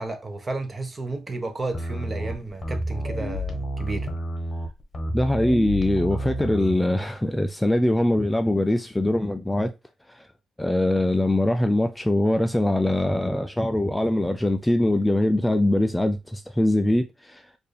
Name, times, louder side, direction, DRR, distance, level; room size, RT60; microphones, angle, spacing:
voice 1, 0.0-4.1, right 2 dB, 30° right, 0.9 m, -32 dB
sound 1, 1.7-6.8, equal, 30° left, 1.0 m, -30 dB
voice 2, 5.1-9.7 10.1-10.3 10.6-17.4, left 1 dB, 10° left, 0.3 m, -22 dB
4.4 x 2.6 x 3.3 m
cardioid pair, 90°, 0 cm